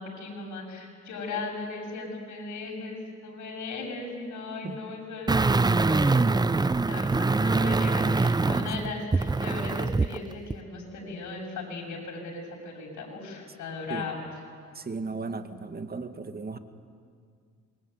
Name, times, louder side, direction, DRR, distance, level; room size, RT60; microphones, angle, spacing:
voice 1, 0.0-6.2 6.6-14.4, left 3 dB, 70° left, 0 dB, 7.7 m, -37 dB
sound 1, 5.3-10.2 10.5-10.6, right 3 dB, 15° right, 0.6 m, -24 dB
voice 2, 14.8-16.6, right 4 dB, 30° right, 8 dB, 2.1 m, -35 dB
27.0 x 23.0 x 9.4 m, 2.1 s
cardioid pair, 90°, 30 cm